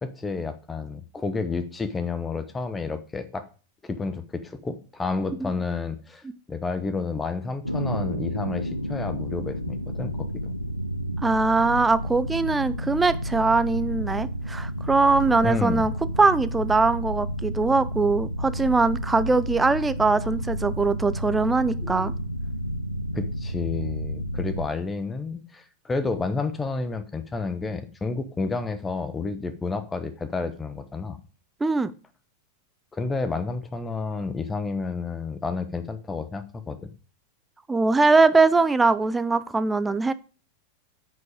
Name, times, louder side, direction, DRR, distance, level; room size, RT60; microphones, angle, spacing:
voice 1, 0.0-3.5 3.8-6.2 6.5-10.5 15.4-15.9 21.8-22.1 23.1-31.2 32.9-36.9, left 4 dB, 15° left, 11 dB, 0.9 m, -30 dB
sound 1, 7.6-24.7, equal, 85° left, 0.6 m, -31 dB
voice 2, 11.2-15.9 16.2-22.1 31.6-31.9 37.7-40.1, right 3 dB, 10° right, 14 dB, 0.6 m, -21 dB
9.4 x 5.4 x 5.0 m, 0.36 s
figure-of-eight pair, 90°, 0 cm